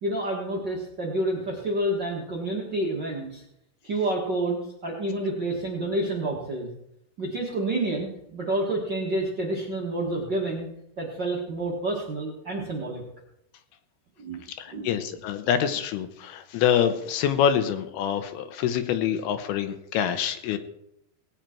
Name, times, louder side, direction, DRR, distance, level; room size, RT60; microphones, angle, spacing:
voice 1, 0.0-3.4 3.8-6.7 7.2-10.7 11.0-13.0 14.2-14.4 14.7-14.9, right 1 dB, 45° right, -3 dB, 1.6 m, -29 dB
voice 2, 14.5-20.6, left 9 dB, 85° left, 9 dB, 2.9 m, -26 dB
18.5 x 9.1 x 4.5 m, 0.78 s
omnidirectional pair, 4.5 m